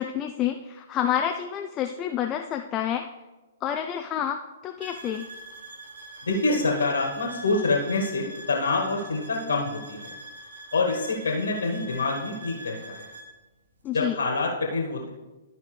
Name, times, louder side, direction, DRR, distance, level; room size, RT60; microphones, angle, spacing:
voice 1, 0.0-3.1 3.6-5.3 13.8-14.2, left 10 dB, 25° left, 5 dB, 0.4 m, -28 dB
sound 1, 4.8-13.3, right 1 dB, 75° right, 1.4 m, -43 dB
voice 2, 6.2-10.1 10.7-13.1 13.9-15.1, left 3 dB, 80° left, 0 dB, 1.6 m, -26 dB
12.5 x 5.2 x 3.3 m, 1.1 s
hypercardioid pair, 120°, 0 cm